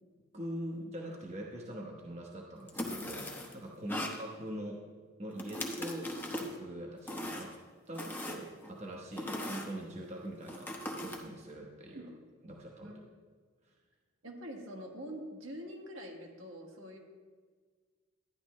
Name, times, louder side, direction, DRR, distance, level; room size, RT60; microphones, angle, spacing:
voice 1, 0.3-4.8 5.2-7.5 7.9-12.1 12.4-12.9, equal, 30° right, -1 dB, 1.0 m, -43 dB
sound 1, 2.7-3.5 3.9-4.2 5.4-6.6 7.1-7.6 7.9-8.7 9.2-9.7 10.5-11.2, left 1 dB, 10° left, 0.9 m, -39 dB
voice 2, 14.2-17.0, equal, 70° right, 0 dB, 1.7 m, -45 dB
12.0 x 10.0 x 3.1 m, 1.5 s
head